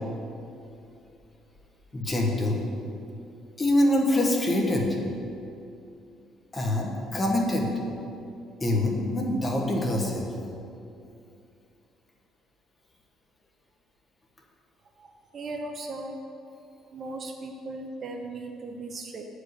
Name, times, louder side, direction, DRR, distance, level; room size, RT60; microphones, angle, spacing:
voice 1, 1.9-2.6 3.6-4.9 6.5-7.7 8.6-10.3, left 1 dB, 20° left, -1 dB, 1.2 m, -25 dB
voice 2, 15.0-16.2 16.9-19.2, right 2 dB, 40° right, 4 dB, 0.6 m, -37 dB
7.8 x 4.9 x 6.7 m, 2.6 s
cardioid pair, 140°, 0 cm